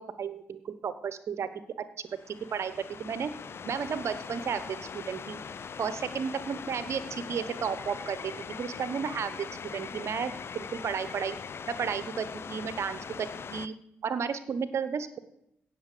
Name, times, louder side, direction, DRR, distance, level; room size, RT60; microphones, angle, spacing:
voice 1, 0.0-1.5 2.3-3.3 3.7-5.4 5.8-8.3 8.6-9.5 9.7-11.4 11.7-13.7 14.0-15.2, right 6 dB, 55° right, 13 dB, 1.1 m, -33 dB
sound 1, 2.1-13.7, left 6 dB, 45° left, 0.7 m, -41 dB
16.5 x 7.0 x 6.8 m, 0.79 s
hypercardioid pair, 40°, 6 cm